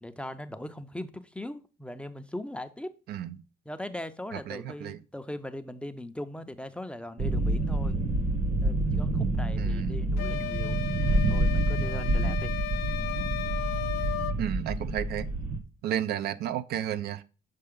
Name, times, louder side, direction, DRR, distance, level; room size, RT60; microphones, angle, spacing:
voice 1, 0.0-2.9 3.7-8.0 8.6-12.5, left 1 dB, 5° left, 0.4 m, -40 dB
voice 2, 4.3-5.0 9.5-10.0 14.4-15.3 15.8-17.2, right 10 dB, 70° right, 0.5 m, -32 dB
sound 1, 7.2-15.6, right 2 dB, 55° right, 1.2 m, -28 dB
sound 2, 10.2-14.4, left 13 dB, 75° left, 0.5 m, -35 dB
6.7 x 4.3 x 3.6 m
cardioid pair, 110°, 17 cm